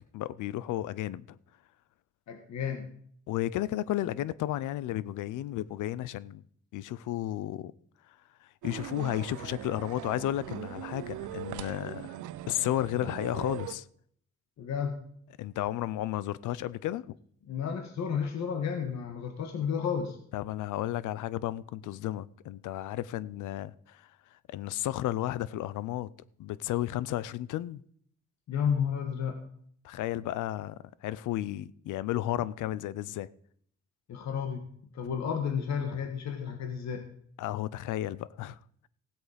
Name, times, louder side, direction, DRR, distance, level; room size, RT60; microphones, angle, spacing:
voice 1, 0.1-1.4 3.3-6.4 6.7-7.7 8.6-12.2 12.5-13.8 15.4-17.2 20.3-24.0 24.5-26.1 26.4-27.8 29.8-33.3 37.4-38.6, left 14 dB, 80° left, 0.7 m, -33 dB
voice 2, 2.3-2.9 14.6-14.9 17.5-20.2 28.5-29.4 34.1-34.6 34.9-37.1, left 7 dB, 65° left, 1.7 m, -32 dB
sound 1, 8.6-13.7, right 13 dB, 80° right, 0.7 m, -40 dB
16.0 x 8.0 x 5.1 m
cardioid pair, 90°, 30 cm